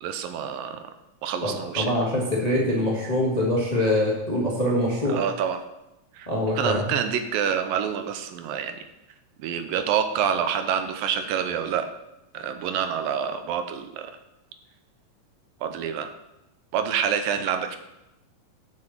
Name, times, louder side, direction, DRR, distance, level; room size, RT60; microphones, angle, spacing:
voice 1, 0.0-0.8 1.2-1.9 5.1-5.6 6.1-6.3 6.5-8.8 9.4-11.9 12.3-14.1 15.6-16.1 16.7-17.8, right 8 dB, 80° right, 8 dB, 2.4 m, -27 dB
voice 2, 1.4-5.2 6.3-7.0, left 1 dB, 20° left, -3 dB, 1.1 m, -24 dB
7.7 x 7.0 x 7.3 m, 0.90 s
omnidirectional pair, 4.1 m